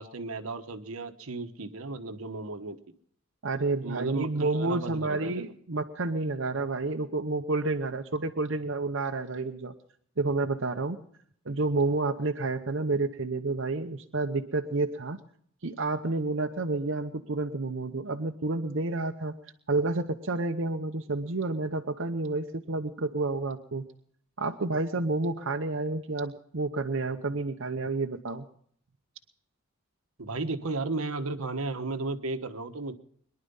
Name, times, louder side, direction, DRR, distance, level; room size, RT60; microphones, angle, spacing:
voice 1, 0.0-2.8 3.8-5.4 30.2-32.9, right 3 dB, 85° right, 8 dB, 1.2 m, -34 dB
voice 2, 3.4-9.7 10.2-11.0 11.5-15.2 15.6-19.3 19.7-23.9 24.4-28.4, right 3 dB, 60° right, 4 dB, 0.9 m, -30 dB
22.5 x 11.0 x 5.5 m, 0.63 s
head